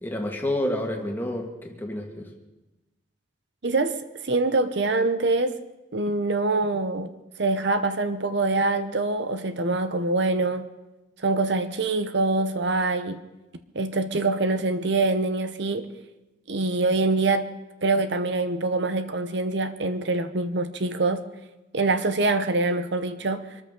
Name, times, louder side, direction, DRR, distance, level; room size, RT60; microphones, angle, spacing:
voice 1, 0.0-2.3, left 1 dB, 10° left, 1.8 m, -29 dB
voice 2, 3.6-5.6 5.9-7.1 7.4-10.7 11.2-13.2 13.7-15.9 16.5-17.5 17.8-21.2 21.7-23.5, right 3 dB, 60° right, 0.8 m, -24 dB
24.5 x 13.5 x 3.8 m
head